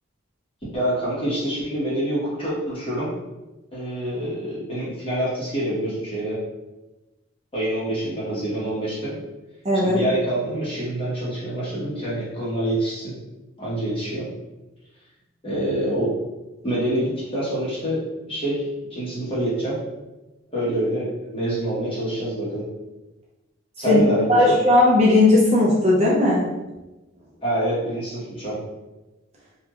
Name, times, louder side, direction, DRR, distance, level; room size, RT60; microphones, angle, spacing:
voice 1, 0.7-3.1 3.7-6.4 7.5-9.2 9.8-13.2 13.6-14.3 15.4-16.1 16.6-19.8 20.5-22.6 23.8-24.3 27.4-28.6, right 1 dB, 25° left, -8 dB, 1.0 m, -26 dB
voice 2, 9.6-10.0 23.9-24.0 24.3-26.5, left 2 dB, 30° right, -5 dB, 0.5 m, -17 dB
2.9 x 2.5 x 2.3 m, 1.1 s
head